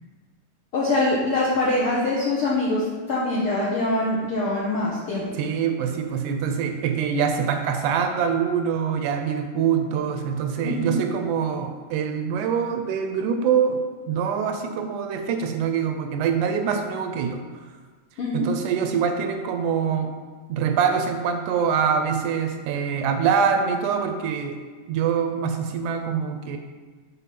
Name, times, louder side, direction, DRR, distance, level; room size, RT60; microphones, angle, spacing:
voice 1, 0.7-5.4 10.6-11.0 18.2-18.5, left 2 dB, 75° left, -6 dB, 1.3 m, -24 dB
voice 2, 5.4-17.4 18.3-20.2 20.5-24.6 24.9-26.6, right 7 dB, 80° right, 6 dB, 1.9 m, -24 dB
7.0 x 4.3 x 5.7 m, 1.5 s
omnidirectional pair, 3.7 m